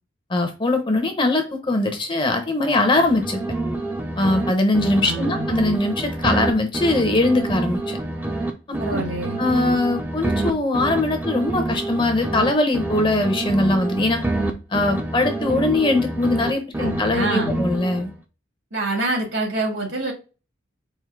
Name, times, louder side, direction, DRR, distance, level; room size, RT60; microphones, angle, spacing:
voice 1, 0.3-3.4 4.2-8.0 8.7-9.0 9.4-14.2 14.7-18.1, left 2 dB, 25° left, 0.7 m, -21 dB
sound 1, 2.9-4.5 4.7-8.5 8.7-12.5 12.7-16.5 16.7-18.2, right 2 dB, 10° right, 0.5 m, -27 dB
voice 2, 5.0-5.5 8.8-9.4 16.8-17.6 18.7-20.1, right 2 dB, 75° right, 2.2 m, -26 dB
4.5 x 2.6 x 3.6 m
head